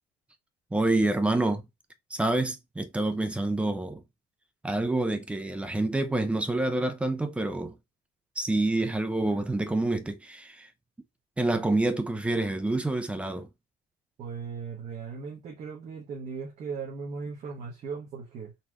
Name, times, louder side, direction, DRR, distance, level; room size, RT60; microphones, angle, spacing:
voice 1, 0.7-1.7 2.1-4.0 4.6-7.7 8.4-10.7 11.4-13.5, right 2 dB, 5° right, 0.4 m, -27 dB
voice 2, 14.2-18.5, right 5 dB, 40° right, 1.1 m, -38 dB
4.1 x 2.9 x 2.4 m
cardioid pair, 165°, 18 cm